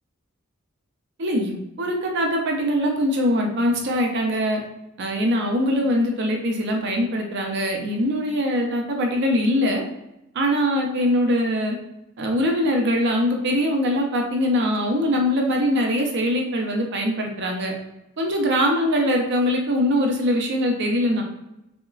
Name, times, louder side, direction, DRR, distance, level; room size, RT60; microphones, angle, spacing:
voice 1, 1.2-4.6 5.0-9.8 10.3-11.8 12.2-17.7 18.2-21.2, equal, 60° right, 1 dB, 0.5 m, -22 dB
3.8 x 2.1 x 2.3 m, 0.90 s
head